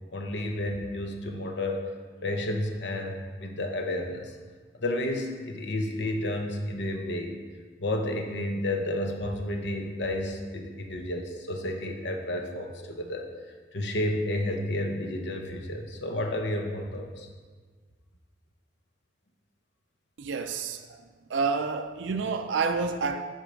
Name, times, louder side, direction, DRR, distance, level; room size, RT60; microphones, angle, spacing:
voice 1, 0.1-1.9 2.2-4.3 4.8-7.4 7.8-13.3 13.7-17.3, left 1 dB, 65° left, 0.9 m, -31 dB
voice 2, 20.2-21.0 21.3-23.2, right 4 dB, 75° right, 0.5 m, -29 dB
8.3 x 4.6 x 5.1 m
head